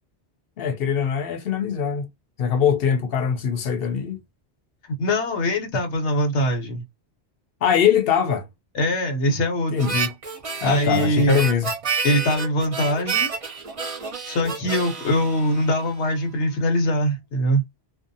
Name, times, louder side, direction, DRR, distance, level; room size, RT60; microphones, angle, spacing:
voice 1, 0.6-2.1 2.4-4.2 7.6-8.5 9.7-10.1 10.6-11.7, left 7 dB, 65° left, 0.8 m, -22 dB
voice 2, 5.0-6.8 8.7-10.0 10.6-11.4 12.0-13.3 14.3-17.6, equal, 80° left, 1.2 m, -22 dB
Harmonica, 9.8-16.3, right 5 dB, 40° right, 0.6 m, -29 dB
2.6 x 2.0 x 2.6 m
omnidirectional pair, 1.1 m